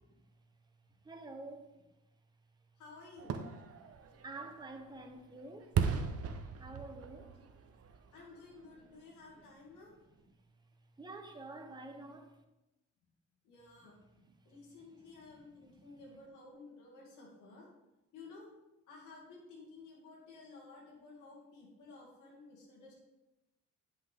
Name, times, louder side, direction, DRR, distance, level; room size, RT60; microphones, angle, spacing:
voice 1, 1.0-1.7 3.8-3.9 4.2-5.8 6.6-7.3 9.1-9.2 11.0-12.3 14.2-14.4 15.2-16.0, right 2 dB, 15° right, 1.0 m, -49 dB
voice 2, 2.8-3.4 7.1-7.3 8.1-9.9 13.4-17.7 18.1-18.5 18.9-23.0, left 3 dB, 90° left, 2.4 m, -54 dB
Fireworks, 3.2-9.0 9.4-9.5, right 7 dB, 50° right, 0.9 m, -38 dB
9.9 x 5.6 x 3.6 m
cardioid pair, 90°, 30 cm